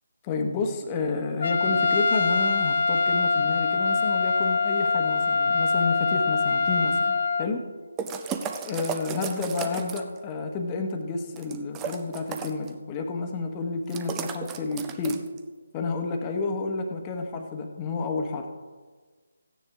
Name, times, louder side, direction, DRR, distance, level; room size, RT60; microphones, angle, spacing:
voice 1, 0.2-7.6 8.6-15.2 15.7-18.5, left 4 dB, 20° left, 4 dB, 1.2 m, -30 dB
Trumpet, 1.4-7.5, left 4 dB, 50° left, 0.4 m, -24 dB
sound 1, 8.0-10.2 11.4-12.7 13.9-15.4, right 6 dB, 15° right, 0.6 m, -34 dB
15.5 x 9.8 x 3.6 m, 1.4 s
figure-of-eight pair, 150°, 0 cm